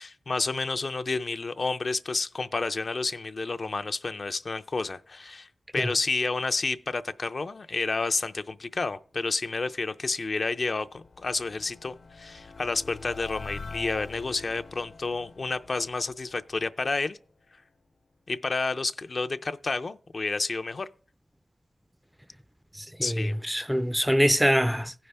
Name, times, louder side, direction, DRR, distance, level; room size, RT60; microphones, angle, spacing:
voice 1, 0.0-17.2 18.3-20.9 23.0-23.3, left 3 dB, 60° left, 0.4 m, -30 dB
sound 1, 10.1-17.2, left 4 dB, 85° left, 1.0 m, -45 dB
voice 2, 22.8-24.9, equal, 5° right, 0.3 m, -24 dB
16.0 x 5.4 x 3.3 m
cardioid pair, 55°, 0 cm